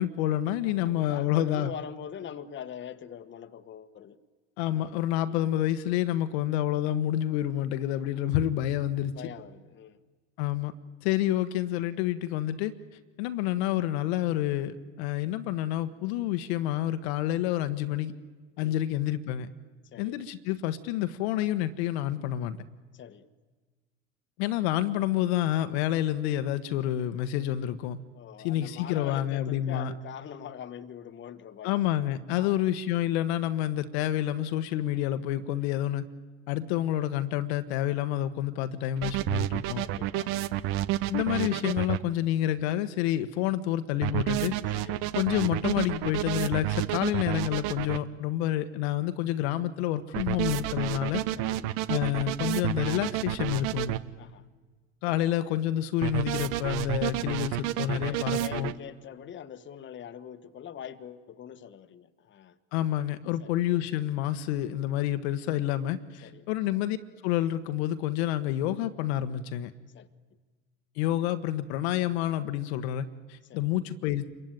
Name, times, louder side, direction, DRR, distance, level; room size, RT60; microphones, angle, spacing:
voice 1, 0.0-1.7 4.6-9.1 10.4-10.7 11.0-12.7 13.2-18.1 18.6-19.5 20.0-22.6 24.4-28.0 28.4-29.9 31.6-36.0 36.5-39.8 41.1-44.9 45.1-51.2 51.9-54.0 55.0-58.7 62.7-67.0 67.2-69.7 71.0-74.3, left 12 dB, 60° left, 11 dB, 1.3 m, -28 dB
voice 2, 0.7-4.2 4.7-5.0 5.3-5.4 9.1-10.0 18.6-18.8 19.9-20.2 22.9-23.3 28.1-31.8 32.3-32.6 39.8-40.4 44.7-45.1 51.4-51.6 54.2-54.4 55.1-55.3 56.9-57.3 57.9-62.6 63.4-63.6 66.2-66.5 69.9-70.1 73.5-73.7, left 9 dB, 30° left, 11 dB, 1.4 m, -43 dB
sound 1, 39.0-42.0 44.0-48.0 50.1-54.0 56.0-58.7, right 14 dB, 55° right, 1.2 m, -30 dB
27.5 x 23.0 x 9.1 m, 1.4 s
hypercardioid pair, 80°, 36 cm